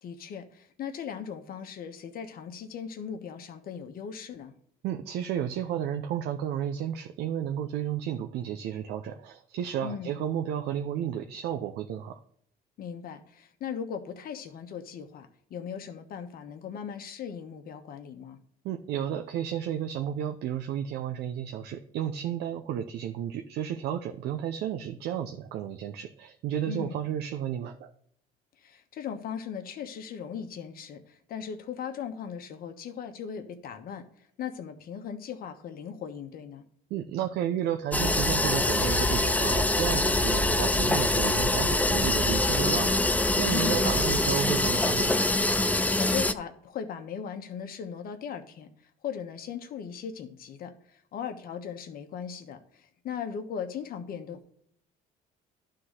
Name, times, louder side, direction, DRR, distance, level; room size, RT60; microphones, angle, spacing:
voice 1, 0.0-4.5 9.8-10.2 12.8-18.4 26.6-27.0 28.6-34.0 34.4-36.6 43.5-44.2 45.7-48.7 49.0-50.7 51.1-54.4, left 7 dB, 60° left, 7 dB, 1.2 m, -38 dB
voice 2, 4.8-12.2 18.6-27.9 36.9-45.2, right 10 dB, 80° right, 6 dB, 0.7 m, -32 dB
sound 1, 37.9-46.3, left 2 dB, 10° left, 0.4 m, -24 dB
11.5 x 3.9 x 6.4 m, 0.65 s
cardioid pair, 110°, 17 cm